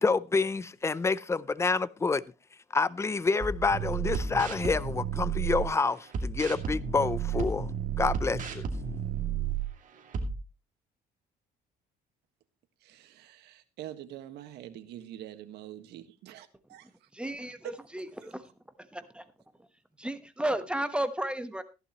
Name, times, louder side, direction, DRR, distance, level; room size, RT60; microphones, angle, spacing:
voice 1, 0.0-2.2 2.7-7.7 8.0-8.6, left 4 dB, 15° left, 0.6 m, -28 dB
sound 1, 3.4-5.7 6.1-9.7 10.1-10.3, right 7 dB, 50° right, 2.4 m, -32 dB
voice 2, 12.8-17.1 17.6-17.7, right 12 dB, 80° right, 1.6 m, -45 dB
voice 3, 17.1-18.5 18.9-19.2 20.0-21.6, right 1 dB, 5° right, 1.1 m, -33 dB
15.0 x 11.0 x 3.0 m
cardioid pair, 110°, 17 cm